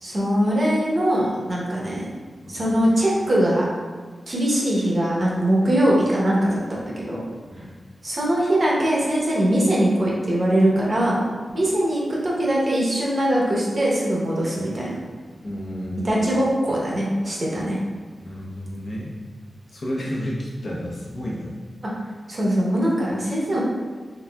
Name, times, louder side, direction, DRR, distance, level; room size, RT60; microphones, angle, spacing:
voice 1, 0.0-2.0 2.5-3.6 4.3-7.2 8.0-11.2 11.5-15.0 16.0-17.8 21.8-21.9 22.3-23.6, right 1 dB, 40° right, -5 dB, 0.9 m, -21 dB
voice 2, 15.4-16.2 18.2-19.1 19.7-21.5, equal, 55° left, -4 dB, 0.8 m, -31 dB
4.0 x 3.5 x 2.3 m, 1.4 s
wide cardioid pair, 135°, 0 cm